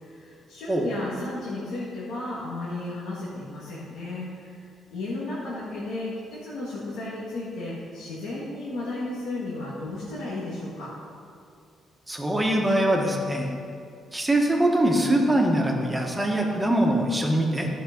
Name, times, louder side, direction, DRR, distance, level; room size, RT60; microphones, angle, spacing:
voice 1, 0.0-10.9, left 2 dB, 80° left, -9 dB, 2.4 m, -34 dB
voice 2, 12.1-13.5 14.1-17.7, right 1 dB, 10° right, 0 dB, 1.6 m, -23 dB
12.5 x 5.5 x 5.5 m, 2.4 s
cardioid pair, 90°, 0 cm